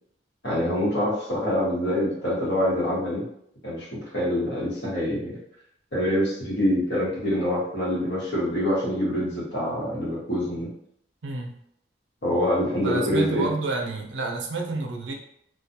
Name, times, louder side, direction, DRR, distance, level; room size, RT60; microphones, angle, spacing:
voice 1, 0.4-3.2 3.6-5.3 5.9-10.7 12.2-13.5, equal, 70° left, -6 dB, 1.1 m, -25 dB
voice 2, 11.2-11.5 12.8-15.1, right 3 dB, 85° right, 2 dB, 0.5 m, -29 dB
2.3 x 2.2 x 2.7 m, 0.71 s
head